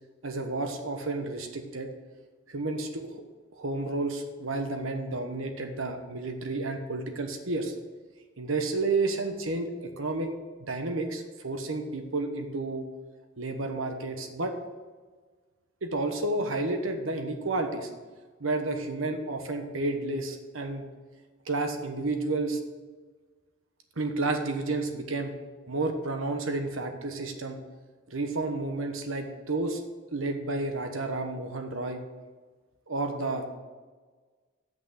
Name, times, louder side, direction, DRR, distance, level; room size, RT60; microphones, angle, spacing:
voice 1, 0.2-1.9 2.5-3.2 3.6-7.7 8.4-10.3 10.6-12.8 13.4-14.5 15.8-17.9 18.4-20.8 21.5-22.6 24.0-25.3 25.7-27.6 28.1-29.8 30.1-32.0 32.9-33.4, right 2 dB, 90° right, 5 dB, 1.2 m, -31 dB
8.1 x 6.1 x 6.4 m, 1.4 s
head